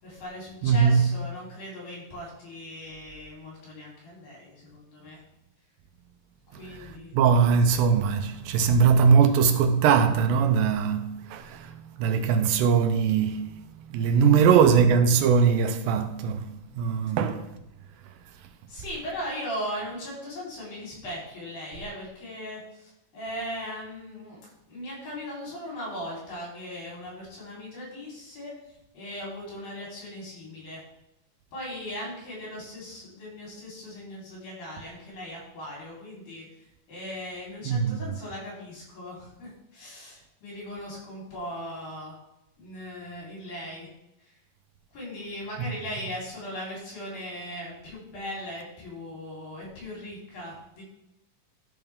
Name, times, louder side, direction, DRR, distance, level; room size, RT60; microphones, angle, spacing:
voice 1, 0.0-5.2 6.5-7.1 14.1-14.5 18.7-24.4 24.7-30.8 31.5-36.5 36.9-42.2 42.6-43.9 44.2-44.3 44.9-50.8, equal, 75° left, 5.6 m, -38 dB
voice 2, 0.6-1.2 6.5-13.5 13.9-17.5 37.7-38.2 45.6-45.7, right 6 dB, 80° right, 2.4 m, -21 dB
13.0 x 5.7 x 3.6 m
omnidirectional pair, 4.1 m